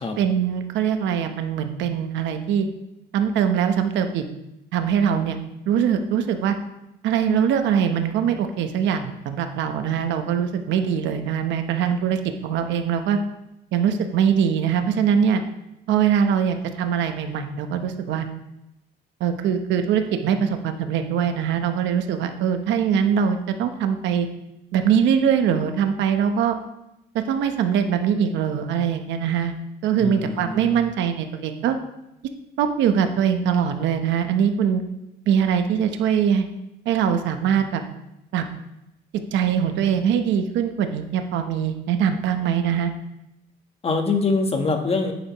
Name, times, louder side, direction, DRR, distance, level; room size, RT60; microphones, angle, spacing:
voice 1, 0.2-2.7 3.1-4.2 4.7-5.4 5.7-6.6 7.0-13.2 13.7-15.4 15.9-18.3 19.2-24.3 24.7-26.6 27.1-29.6 29.8-31.8 32.6-34.8 35.3-36.5 36.9-37.8 38.3-38.4 39.3-42.9, right 8 dB, 80° right, 7 dB, 1.0 m, -22 dB
voice 2, 30.0-30.9 43.8-45.1, left 4 dB, 30° left, 4 dB, 1.3 m, -24 dB
10.0 x 9.3 x 3.1 m, 0.88 s
cardioid pair, 115°, 19 cm